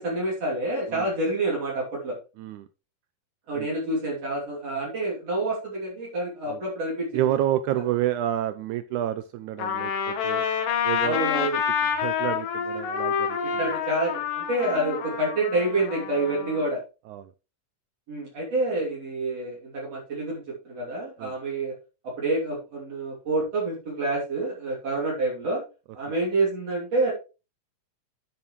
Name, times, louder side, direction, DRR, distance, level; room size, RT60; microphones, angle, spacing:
voice 1, 0.0-2.2 3.5-7.1 11.0-11.6 13.4-16.8 18.1-21.7 22.0-25.6 25.9-27.1, right 2 dB, 50° right, -4 dB, 3.8 m, -28 dB
voice 2, 2.4-2.7 3.5-3.7 6.5-6.6 7.1-10.5 10.8-11.2 11.9-13.8 17.1-17.3 21.2-21.3, right 12 dB, 80° right, 12 dB, 1.8 m, -29 dB
Trumpet, 9.6-16.7, left 7 dB, 80° left, 3.0 m, -28 dB
10.5 x 7.3 x 3.1 m, 0.31 s
omnidirectional pair, 3.9 m